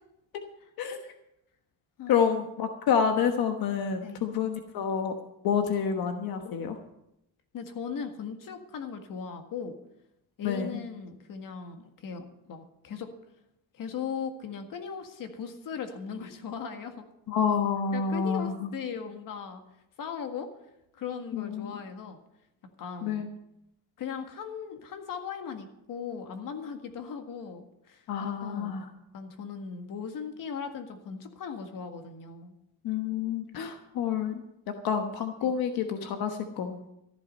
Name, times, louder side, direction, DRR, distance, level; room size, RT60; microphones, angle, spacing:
voice 1, 0.6-1.0 2.0-2.4 4.0-4.3 7.5-9.8 10.4-13.1 13.7-17.1 17.9-19.6 20.0-20.5 20.9-22.2 22.8-23.2 24.0-28.0 28.4-28.8 29.1-32.5 35.4-35.5, left 6 dB, 65° left, 6 dB, 1.8 m, -38 dB
voice 2, 2.1-5.1 5.4-6.8 10.4-10.8 17.3-18.7 21.3-21.8 23.0-23.3 28.1-28.9 32.8-34.4 34.8-36.8, left 7 dB, 90° left, 5 dB, 1.3 m, -28 dB
14.0 x 11.5 x 5.4 m, 0.84 s
cardioid pair, 125°, 35 cm